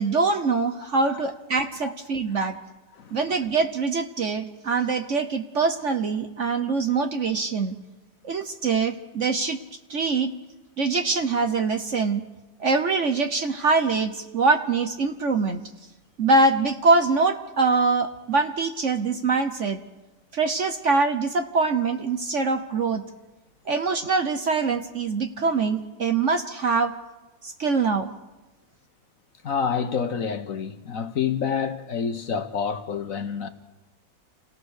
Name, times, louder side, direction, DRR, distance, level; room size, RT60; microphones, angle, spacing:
voice 1, 0.0-2.6 3.1-7.8 8.2-9.6 9.9-10.3 10.8-12.2 12.6-15.6 16.2-19.8 20.3-23.0 23.7-26.9 27.4-28.1, right 4 dB, 50° right, 1.1 m, -23 dB
voice 2, 29.4-33.5, left 6 dB, 55° left, 1.3 m, -28 dB
27.5 x 17.5 x 6.5 m
omnidirectional pair, 1.9 m